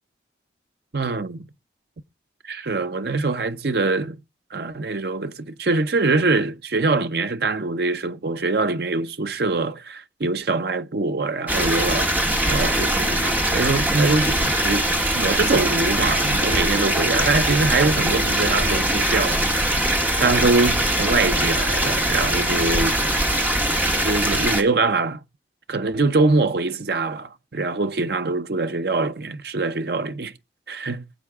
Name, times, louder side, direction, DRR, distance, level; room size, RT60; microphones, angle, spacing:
voice 1, 0.9-1.4 2.5-4.2 4.5-12.2 12.5-19.4 20.2-23.1 24.0-25.2 25.7-30.3 30.7-31.0, right 3 dB, 60° right, 0.7 m, -23 dB
sound 1, 11.5-24.6, right 1 dB, 10° right, 1.4 m, -22 dB
22.0 x 7.6 x 3.6 m
head